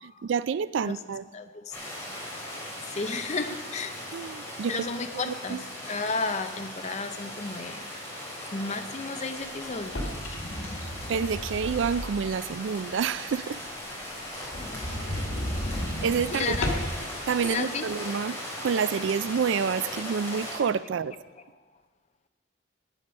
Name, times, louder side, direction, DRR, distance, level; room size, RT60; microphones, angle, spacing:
voice 1, 0.0-1.2 4.1-4.9 5.3-5.6 11.1-13.6 16.0-16.6 17.3-21.1, right 6 dB, 65° right, 17 dB, 0.3 m, -28 dB
sound 1, 1.7-20.6, left 1 dB, 10° left, 3.9 m, -38 dB
voice 2, 2.9-3.9 4.7-7.8 8.5-10.0 16.3-16.8 17.4-18.1 20.7-20.8 21.1-21.2, left 3 dB, 35° left, 8 dB, 0.7 m, -32 dB
sound 2, 9.8-12.4 12.8-12.9 13.3-13.4 13.7-13.8 14.0-14.1 14.4-17.1, left 1 dB, 90° left, 2.4 m, -33 dB
15.0 x 10.0 x 5.3 m, 1.4 s
head